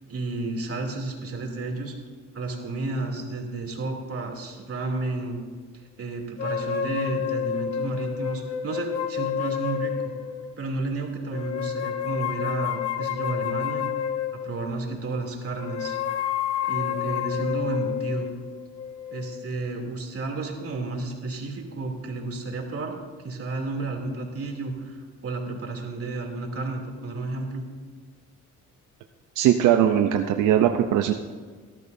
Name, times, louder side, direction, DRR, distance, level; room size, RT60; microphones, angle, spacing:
voice 1, 0.1-1.9 2.3-5.4 6.0-10.1 10.6-13.9 14.3-16.0 16.7-18.3 19.1-27.6, right 3 dB, 50° right, 1 dB, 2.9 m, -32 dB
sound 1, 6.4-10.6 11.3-14.7 15.6-20.0, left 9 dB, 55° left, 1.0 m, -30 dB
voice 2, 29.4-31.1, right 10 dB, 85° right, 6 dB, 0.7 m, -20 dB
18.5 x 12.5 x 2.7 m, 1.5 s
cardioid pair, 90°, 30 cm